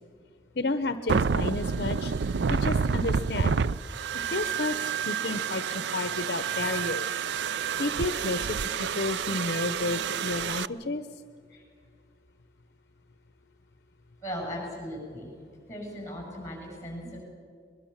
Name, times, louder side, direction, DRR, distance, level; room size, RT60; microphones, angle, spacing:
voice 1, 0.6-2.1 2.5-3.6 4.2-7.2 7.8-11.0, left 2 dB, 60° left, 10 dB, 0.8 m, -31 dB
sound 1, 1.1-10.7, right 6 dB, 75° right, 0.5 m, -29 dB
voice 2, 14.2-15.3 15.7-17.2, equal, 15° left, 0 dB, 7.8 m, -38 dB
22.5 x 22.0 x 7.4 m, 2.1 s
head